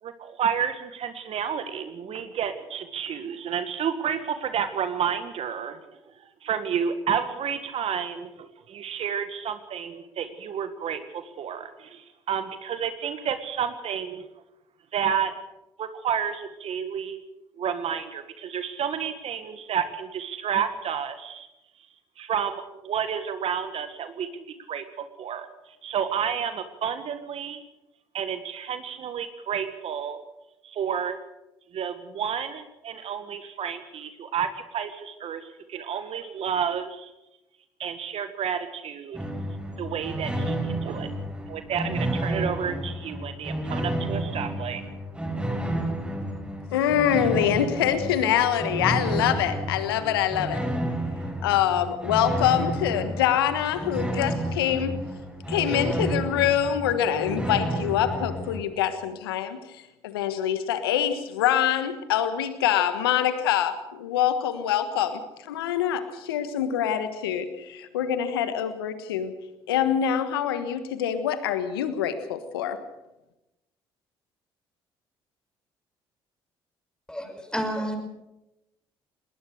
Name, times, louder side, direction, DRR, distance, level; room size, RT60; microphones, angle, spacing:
voice 1, 0.0-5.8 6.4-14.3 14.9-15.3 15.8-17.2 17.6-21.5 22.2-25.5 25.8-27.6 28.1-30.2 30.6-31.2 31.7-37.1 37.8-39.2 39.8-41.1 41.5-44.8, right 8 dB, 55° right, 10 dB, 1.7 m, -30 dB
sound 1, 39.1-58.6, right 1 dB, 10° right, 6.7 m, -31 dB
voice 2, 46.7-50.6 51.4-54.9 55.5-69.3 69.7-72.8, left 10 dB, 85° left, 11 dB, 1.4 m, -25 dB
voice 3, 77.1-78.0, equal, 5° left, 6 dB, 5.7 m, -30 dB
20.5 x 19.5 x 6.5 m, 0.94 s
hypercardioid pair, 55°, 12 cm